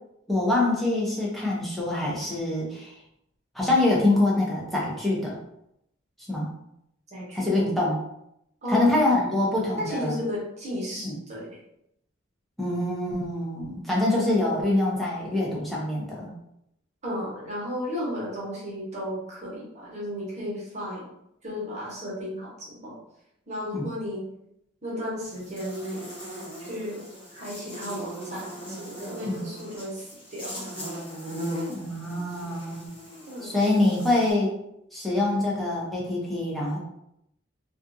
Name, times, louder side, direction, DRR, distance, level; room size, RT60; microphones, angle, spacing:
voice 1, 0.3-2.9 3.5-5.4 6.3-6.5 7.3-8.0 8.7-10.2 11.0-11.1 12.6-16.3 23.7-23.9 29.3-29.4 31.7-32.9 33.4-34.5 34.9-36.8, left 2 dB, ahead, -5 dB, 0.6 m, -25 dB
voice 2, 7.1-7.5 8.6-8.9 9.8-11.5 17.0-21.1 21.4-23.0 23.5-24.2 24.8-26.1 26.7-27.1 27.3-30.7 33.2-33.8, left 1 dB, 35° right, -5 dB, 0.9 m, -34 dB
Buzz, 25.2-34.3, equal, 30° left, 0.9 m, -39 dB
2.4 x 2.4 x 2.6 m, 0.79 s
head